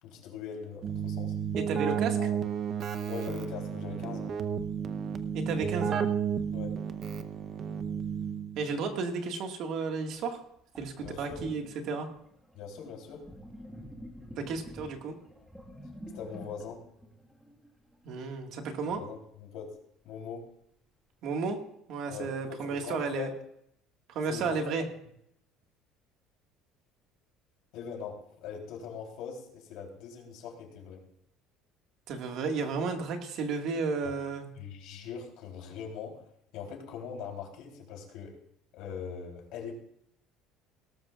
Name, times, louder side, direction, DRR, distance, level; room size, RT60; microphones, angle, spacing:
voice 1, 0.0-1.4 1.8-2.4 3.1-4.3 6.5-6.8 11.0-11.4 12.5-13.3 16.1-16.8 18.9-19.8 20.0-20.5 22.1-23.4 24.2-24.6 27.7-31.0 34.0-34.1 34.6-38.4 38.7-39.7, left 6 dB, 65° left, 1 dB, 3.4 m, -41 dB
Keyboard (musical), 0.8-8.7, right 7 dB, 35° right, 0.8 m, -32 dB
voice 2, 1.6-2.2 5.3-6.0 8.6-10.4 10.8-12.1 14.4-15.2 18.0-19.0 21.2-21.6 21.9-23.3 24.1-24.8 32.1-34.5, right 4 dB, 50° right, 4 dB, 1.8 m, -33 dB
Sink (filling or washing), 10.1-10.2 10.8-18.1, equal, 5° right, 1.6 m, -49 dB
18.0 x 13.0 x 2.4 m, 0.73 s
cardioid pair, 165°, 0 cm